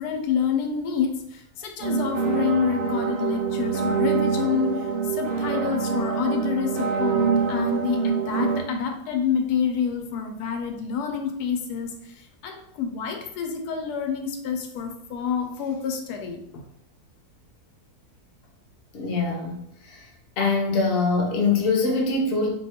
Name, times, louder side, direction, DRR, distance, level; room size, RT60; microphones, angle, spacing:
voice 1, 0.0-16.6, left 7 dB, 90° left, 4 dB, 1.1 m, -28 dB
sound 1, 1.8-8.6, right 6 dB, 70° right, 0.5 m, -25 dB
voice 2, 18.9-19.6 19.9-20.0 20.4-22.5, left 3 dB, 55° left, 0 dB, 0.7 m, -23 dB
2.7 x 2.3 x 4.1 m, 0.73 s
omnidirectional pair, 1.6 m